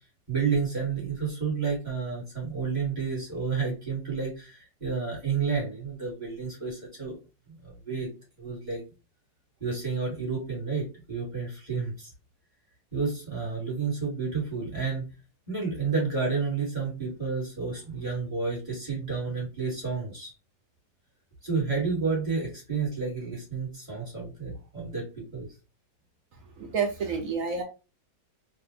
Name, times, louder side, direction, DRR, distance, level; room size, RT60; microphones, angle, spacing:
voice 1, 0.3-7.2 7.5-8.1 8.4-8.8 9.6-12.1 12.9-15.1 15.5-20.3 21.4-25.0 25.3-25.5, right 5 dB, 25° right, -4 dB, 1.7 m, -30 dB
voice 2, 26.6-27.6, right 5 dB, 60° right, 3 dB, 0.9 m, -29 dB
3.4 x 2.4 x 2.8 m, 0.30 s
omnidirectional pair, 1.9 m